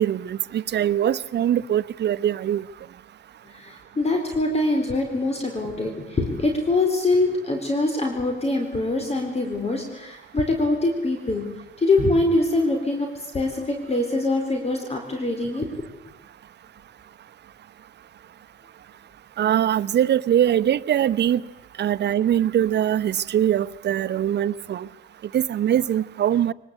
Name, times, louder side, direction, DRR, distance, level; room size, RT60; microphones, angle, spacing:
voice 1, 0.0-2.6 19.4-21.4 21.8-24.9 25.3-26.5, right 10 dB, 60° right, 15 dB, 0.9 m, -22 dB
voice 2, 3.5-11.5 11.8-15.8, left 2 dB, 30° left, 4 dB, 4.2 m, -24 dB
23.5 x 20.0 x 8.4 m, 0.91 s
cardioid pair, 90°, 20 cm